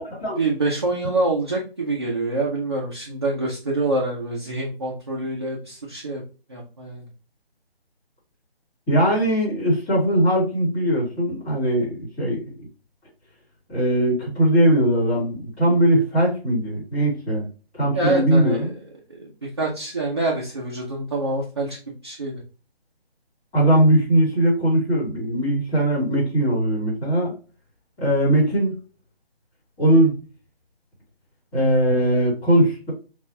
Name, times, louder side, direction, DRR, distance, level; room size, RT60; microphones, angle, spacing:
voice 1, 0.3-6.2 6.5-7.1 17.9-18.7 19.1-22.4, right 2 dB, 25° right, -4 dB, 0.6 m, -26 dB
voice 2, 8.9-12.7 13.7-17.4 17.7-18.7 23.5-27.3 28.0-28.8 29.8-30.1 31.5-32.9, right 1 dB, 10° left, -11 dB, 2.5 m, -20 dB
6.4 x 2.5 x 2.7 m, 0.35 s
hypercardioid pair, 170°, 31 cm